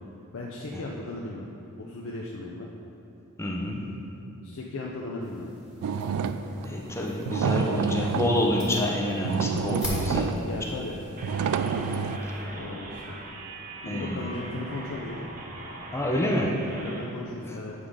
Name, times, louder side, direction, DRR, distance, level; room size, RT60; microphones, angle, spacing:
voice 1, 0.3-1.5 1.8-2.7 4.4-5.5 7.5-8.3 10.4-11.0 12.5-13.2 13.8-15.2 16.8-17.7, left 2 dB, 60° left, -2 dB, 0.5 m, -37 dB
voice 2, 3.4-3.9 6.6-10.6 13.9-14.3 15.9-16.6 17.5-17.6, left 1 dB, 10° left, -1 dB, 0.5 m, -28 dB
sound 1, 5.2-12.4, equal, 5° right, 1.4 m, -42 dB
sound 2, 5.8-6.7 7.2-8.5 9.0-9.1 9.2-10.5 11.2-12.2, right 5 dB, 75° right, 0.3 m, -28 dB
sound 3, 11.2-17.1, right 2 dB, 40° right, 0.7 m, -41 dB
8.1 x 3.7 x 4.9 m, 2.8 s
head